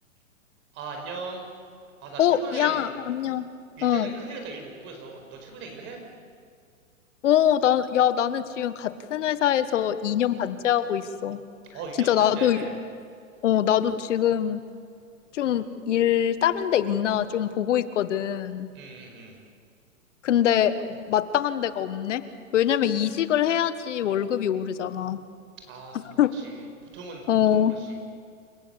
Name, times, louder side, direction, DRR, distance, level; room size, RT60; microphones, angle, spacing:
voice 1, 0.7-1.4 2.0-2.8 3.8-6.0 11.7-12.8 18.7-19.4 25.6-26.0 26.3-26.6 26.9-28.0, right 4 dB, 30° right, 3 dB, 5.0 m, -39 dB
voice 2, 2.2-3.5 3.8-4.1 7.2-11.4 12.1-12.6 13.4-14.6 15.3-18.7 20.2-22.2 22.5-25.2 26.2-26.3 27.3-27.8, left 10 dB, 60° left, 13 dB, 1.4 m, -23 dB
28.5 x 15.5 x 8.2 m, 2.3 s
hypercardioid pair, 145°, 41 cm